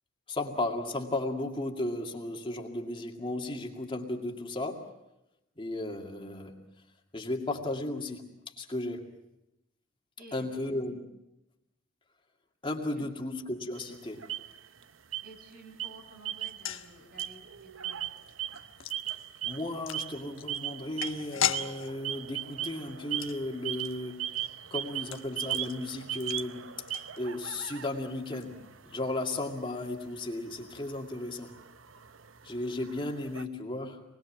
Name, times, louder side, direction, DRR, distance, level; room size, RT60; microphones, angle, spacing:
voice 1, 0.3-4.9 5.6-6.6 7.1-8.3 8.6-9.1 10.3-11.0 12.6-14.2 19.4-24.4 24.7-26.8 27.2-28.6 28.9-31.5 32.4-34.0, left 2 dB, 25° left, 1 dB, 2.3 m, -35 dB
voice 2, 10.2-10.8 12.9-13.1 15.2-18.0, right 2 dB, 50° right, 3 dB, 5.9 m, -52 dB
sound 1, 13.8-14.8 15.1-15.5 15.8-16.8 17.1-33.4, right 12 dB, 80° right, 0.9 m, -39 dB
sound 2, 16.4-27.6 27.9-28.0 28.3-28.4, left 10 dB, 90° left, 1.2 m, -39 dB
27.0 x 21.5 x 7.4 m, 0.91 s
head